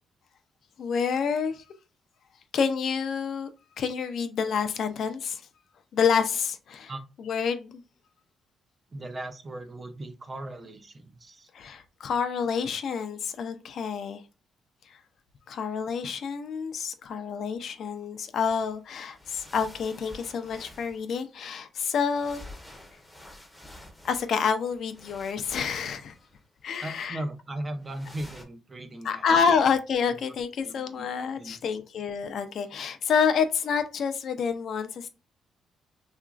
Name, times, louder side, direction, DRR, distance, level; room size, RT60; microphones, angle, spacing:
voice 1, 0.8-1.6 2.5-3.5 3.8-5.5 5.9-6.9 7.3-7.8 11.5-14.2 14.9-15.0 15.5-22.4 24.0-26.2 26.6-27.2 29.0-35.1, left 6 dB, 65° left, 0.4 m, -28 dB
voice 2, 8.9-11.5 26.8-29.3 29.5-29.6 30.6-31.1 31.4-31.6, right 1 dB, 30° right, 0.5 m, -38 dB
sound 1, 18.4-18.8 19.0-21.4 22.1-26.7 27.8-28.4, left 1 dB, 10° left, 0.7 m, -49 dB
2.8 x 2.4 x 2.3 m
cardioid pair, 90°, 0 cm